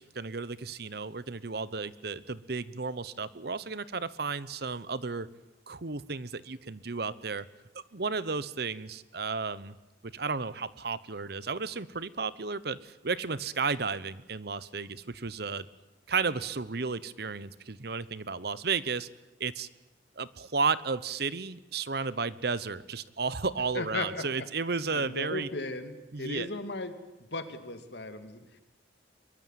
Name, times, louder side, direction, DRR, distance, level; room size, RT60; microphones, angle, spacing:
voice 1, 0.0-5.3 5.7-7.4 7.9-9.7 10.1-15.7 16.1-19.1 19.4-19.7 20.2-25.5 26.1-26.5, right 4 dB, 60° right, 17 dB, 1.0 m, -33 dB
voice 2, 23.7-24.2 24.9-26.9 27.3-28.6, left 2 dB, 65° left, 8 dB, 2.6 m, -36 dB
23.0 x 22.5 x 9.2 m, 0.98 s
head